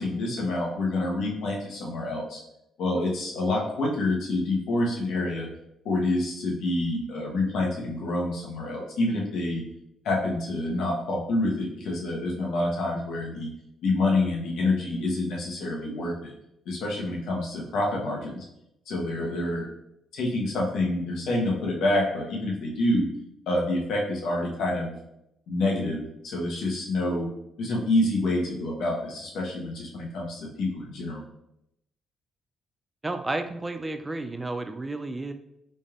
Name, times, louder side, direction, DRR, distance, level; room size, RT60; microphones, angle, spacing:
voice 1, 0.0-2.4 2.8-5.5 5.8-9.6 10.0-13.5 13.8-16.3 16.6-18.4 18.9-19.7 20.1-23.1 23.5-25.0 25.5-27.3 27.6-31.2, left 2 dB, 80° left, -2 dB, 1.0 m, -27 dB
voice 2, 33.0-35.3, right 2 dB, 20° right, 8 dB, 0.3 m, -32 dB
4.2 x 3.3 x 2.4 m, 0.82 s
cardioid pair, 90°, 0 cm